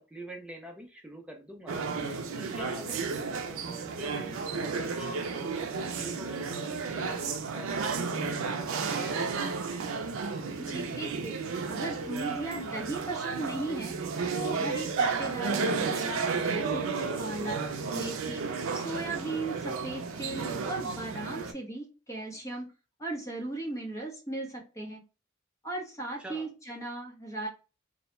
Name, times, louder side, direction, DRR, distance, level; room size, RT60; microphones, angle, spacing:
voice 1, 0.1-1.8 2.4-3.0 3.2-9.2 26.2-26.5, right 1 dB, 5° right, 3 dB, 0.4 m, -45 dB
sound 1, 1.7-21.5, right 4 dB, 90° right, 0.4 m, -32 dB
voice 2, 10.6-11.4 11.7-17.6 17.9-18.5 18.7-22.7 23.0-25.0 25.6-27.5, right 2 dB, 15° left, 0 dB, 0.8 m, -37 dB
2.2 x 2.1 x 2.9 m, 0.33 s
head